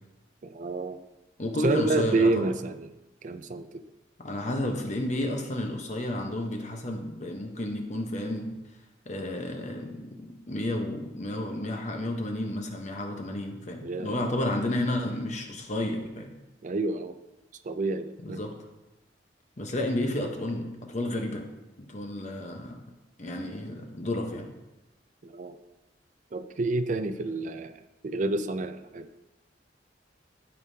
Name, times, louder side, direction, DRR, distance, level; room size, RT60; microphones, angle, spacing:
voice 1, 0.4-1.0 1.6-3.0 3.2-3.8 13.8-14.3 16.6-17.2 17.6-18.5 25.2-25.6 26.3-29.1, right 2 dB, 45° right, 10 dB, 0.4 m, -29 dB
voice 2, 1.4-2.5 4.2-8.5 9.1-16.3 18.2-18.5 19.6-21.5 21.9-22.8 23.2-24.5, left 1 dB, 40° left, 3 dB, 1.0 m, -31 dB
12.5 x 5.3 x 2.8 m, 1.0 s
head